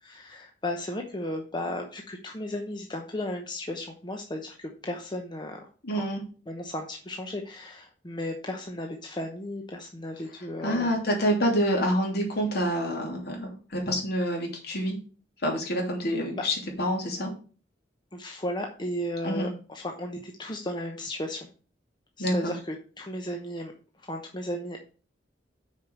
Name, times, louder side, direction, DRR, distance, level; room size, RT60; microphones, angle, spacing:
voice 1, 0.0-5.7 5.9-6.0 6.5-10.9 16.4-16.5 18.1-21.5 22.2-23.7 24.0-24.8, left 1 dB, 25° left, 3 dB, 0.9 m, -35 dB
voice 2, 5.8-6.2 10.6-15.0 15.4-17.3 19.2-19.5 22.2-22.5, equal, 60° left, 0 dB, 3.0 m, -27 dB
6.4 x 4.9 x 6.6 m, 0.38 s
head